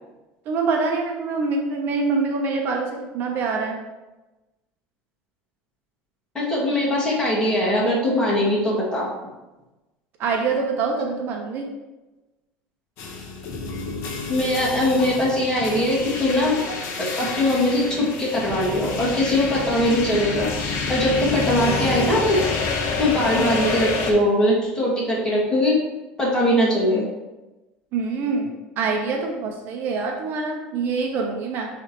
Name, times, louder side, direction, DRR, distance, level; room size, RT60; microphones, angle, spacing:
voice 1, 0.5-3.8 10.2-11.7 27.9-31.7, right 4 dB, 50° right, 1 dB, 0.9 m, -25 dB
voice 2, 6.3-9.1 14.3-22.4 23.0-25.7 26.2-27.1, left 1 dB, 15° left, -5 dB, 2.0 m, -21 dB
sound 1, 13.0-24.1, left 4 dB, 60° left, 1.2 m, -28 dB
9.9 x 3.4 x 3.0 m, 1.1 s
cardioid pair, 140°, 5 cm